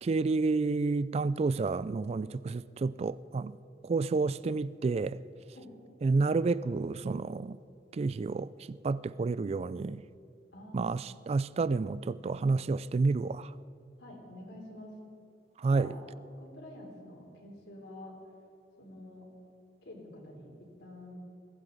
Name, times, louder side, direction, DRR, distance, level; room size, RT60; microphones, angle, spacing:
voice 1, 0.0-3.6 3.8-5.2 6.0-7.6 7.9-10.0 10.7-13.5 15.6-16.0, right 3 dB, 35° right, 0.3 m, -30 dB
voice 2, 10.5-10.9 14.0-14.9 15.7-16.0 16.4-18.1 18.8-19.3 19.8-20.5 20.8-21.2, left 1 dB, 85° left, 3.5 m, -47 dB
21.0 x 15.0 x 4.0 m
head